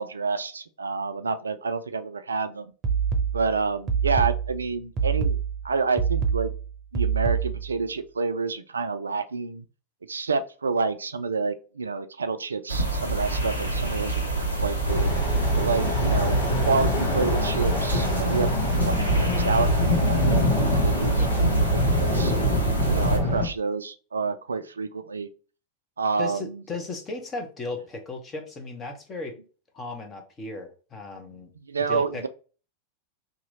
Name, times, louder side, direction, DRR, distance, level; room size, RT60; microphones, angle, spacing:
voice 1, 0.0-2.7 3.3-5.4 5.6-6.5 6.9-9.6 10.1-14.2 14.5-15.1 15.6-16.4 16.7-18.5 18.8-20.5 20.8-22.3 22.8-25.3 26.0-26.5 31.7-32.3, right 4 dB, 75° right, 0.3 m, -28 dB
sound 1, 2.8-7.8, right 6 dB, 30° right, 0.8 m, -26 dB
sound 2, 12.7-23.2, right 2 dB, 90° left, 0.8 m, -28 dB
sound 3, 14.9-23.5, left 1 dB, 70° left, 1.1 m, -24 dB
voice 2, 21.1-21.5 26.2-29.4 29.7-31.5 31.9-32.3, left 3 dB, 25° left, 1.0 m, -36 dB
2.9 x 2.7 x 3.9 m
figure-of-eight pair, 90°, 0 cm